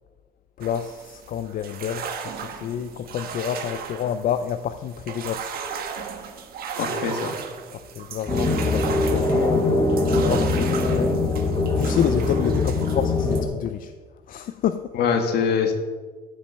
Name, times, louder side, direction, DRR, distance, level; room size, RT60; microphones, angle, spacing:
voice 1, 0.6-5.5 7.7-11.1 11.6-13.9 14.3-14.9, left 9 dB, 55° left, 10 dB, 0.5 m, -29 dB
sound 1, 0.6-13.4, right 6 dB, 60° right, 1.4 m, -35 dB
voice 2, 6.8-7.4 14.9-15.7, left 6 dB, 70° left, 5 dB, 1.7 m, -23 dB
sound 2, 8.3-13.4, left 2 dB, 25° left, 2.3 m, -22 dB
13.0 x 6.1 x 6.3 m, 1.4 s
cardioid pair, 110°, 17 cm